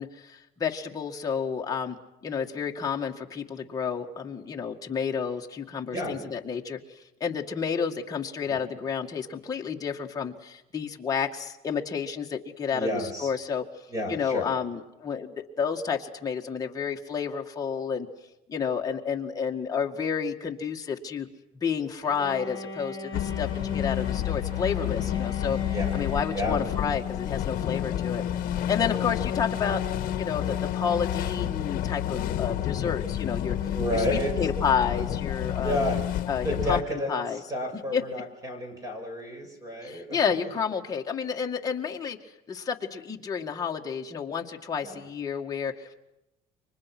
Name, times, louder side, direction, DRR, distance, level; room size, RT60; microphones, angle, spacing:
voice 1, 0.0-6.8 7.2-13.6 14.1-18.1 18.5-21.3 21.6-28.2 28.7-29.8 30.2-35.8 36.3-36.8 37.1-37.4 37.7-38.0 39.8-42.2 42.5-45.9, left 6 dB, 20° left, 1 dB, 2.0 m, -30 dB
voice 2, 12.7-13.3 13.9-14.5 25.7-26.1 26.3-26.6 33.7-34.4 35.6-36.0 36.4-40.2 40.4-40.5 44.8-45.0, left 1 dB, 20° right, 5 dB, 5.9 m, -31 dB
Bowed string instrument, 22.0-26.9, left 1 dB, 35° right, 6.7 m, -42 dB
sound 1, 23.1-36.8, left 11 dB, 55° left, 1.5 m, -29 dB
29.5 x 25.0 x 6.2 m, 0.91 s
cardioid pair, 170°, 18 cm